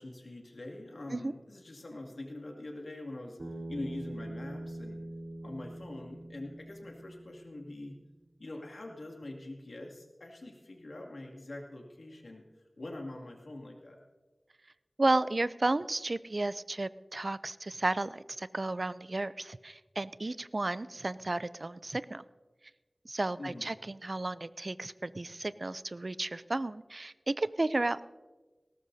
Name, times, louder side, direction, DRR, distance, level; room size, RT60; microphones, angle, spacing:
voice 1, 0.0-5.0 5.4-8.0 8.4-12.4 12.8-14.0 23.4-23.7, left 2 dB, 85° left, 0 dB, 2.4 m, -44 dB
Bass guitar, 3.4-7.7, right 1 dB, 75° right, 4.0 m, -43 dB
voice 2, 15.0-22.2 23.0-28.0, right 2 dB, 55° right, 16 dB, 0.4 m, -33 dB
19.5 x 17.5 x 2.7 m, 1.2 s
wide cardioid pair, 55°, 0 cm